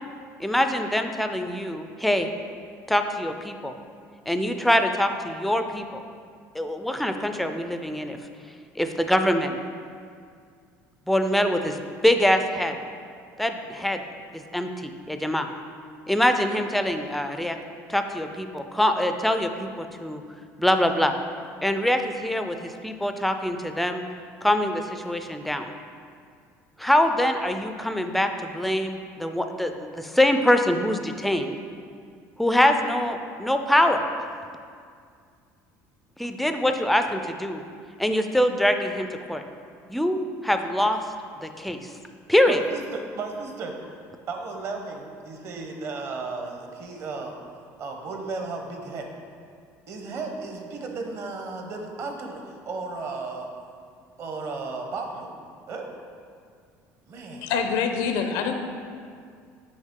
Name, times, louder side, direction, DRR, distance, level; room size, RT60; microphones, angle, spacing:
voice 1, 0.4-2.3 2.9-3.7 4.3-6.0 6.5-8.2 8.8-9.6 11.1-11.8 12.0-12.8 13.4-14.0 14.3-15.5 16.1-17.6 17.9-20.2 20.6-21.1 21.6-24.0 24.4-25.7 26.8-31.5 32.4-34.0 36.2-37.6 38.0-39.4 39.9-41.0 41.4-41.9 42.3-42.6, left 1 dB, ahead, 6 dB, 0.3 m, -24 dB
voice 2, 42.5-43.7 44.3-47.3 47.8-49.1 49.9-53.5 54.2-55.3 55.7-55.9 57.1-57.5, right 3 dB, 45° right, 3 dB, 0.8 m, -34 dB
voice 3, 57.4-58.5, left 6 dB, 85° left, 5 dB, 0.6 m, -25 dB
6.4 x 5.0 x 3.7 m, 2.2 s
cardioid pair, 125°, 7 cm